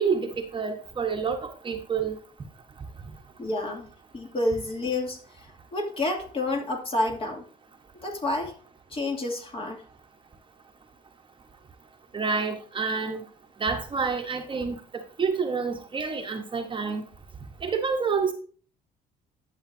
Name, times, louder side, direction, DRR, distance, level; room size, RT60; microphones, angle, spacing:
voice 1, 0.0-1.4 1.6-2.2 12.1-13.2 13.6-14.8 15.2-17.0 17.6-18.3, right 5 dB, 30° right, 4 dB, 1.2 m, -28 dB
voice 2, 3.4-3.9 4.1-5.2 5.7-7.4 8.0-8.5 8.9-9.8, left 2 dB, 35° left, 1 dB, 2.6 m, -29 dB
11.0 x 7.2 x 2.7 m, 0.42 s
cardioid pair, 110°, 17 cm